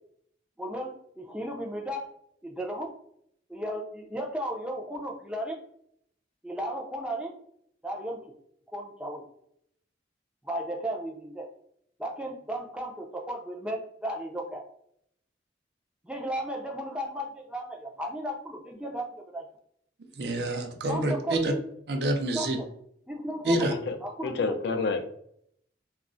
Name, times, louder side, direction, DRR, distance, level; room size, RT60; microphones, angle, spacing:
voice 1, 0.6-2.1 2.4-2.9 3.5-5.6 6.4-7.3 7.8-8.2 8.7-9.2 10.4-11.5 12.0-14.6 16.0-19.4 20.9-21.6 22.3-22.7 23.1-23.6 24.0-24.8, right 1 dB, 5° right, 1 dB, 0.4 m, -35 dB
voice 2, 20.2-21.5 21.9-22.6 23.4-23.7, right 1 dB, 60° right, 4 dB, 0.5 m, -27 dB
voice 3, 24.2-25.0, left 4 dB, 65° left, 7 dB, 0.4 m, -29 dB
2.3 x 2.0 x 3.7 m, 0.69 s
head